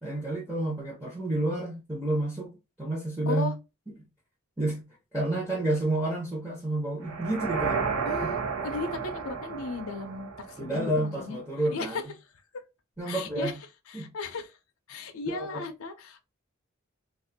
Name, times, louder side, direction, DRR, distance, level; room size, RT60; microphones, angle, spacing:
voice 1, 0.0-2.5 2.8-3.5 4.6-4.8 5.1-7.8 8.2-8.3 10.6-12.0 13.0-13.5 13.9-14.1 15.3-15.6, right 1 dB, 10° right, 0.8 m, -29 dB
sound 1, 7.0-11.1, right 5 dB, 90° right, 0.8 m, -32 dB
voice 2, 8.1-11.4 11.7-12.0 13.1-13.6 13.9-14.6 14.9-16.3, left 3 dB, 80° left, 0.5 m, -36 dB
2.5 x 2.3 x 3.9 m
head